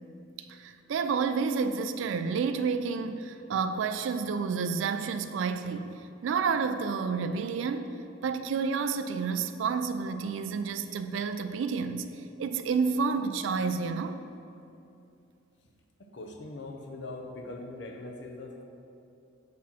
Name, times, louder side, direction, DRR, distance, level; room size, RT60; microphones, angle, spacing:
voice 1, 0.4-5.9 6.2-8.0 8.2-12.1 12.4-14.2, right 5 dB, 75° right, 0.3 m, -30 dB
voice 2, 16.1-18.6, left 2 dB, 60° left, 0.6 m, -41 dB
7.3 x 4.1 x 4.3 m
head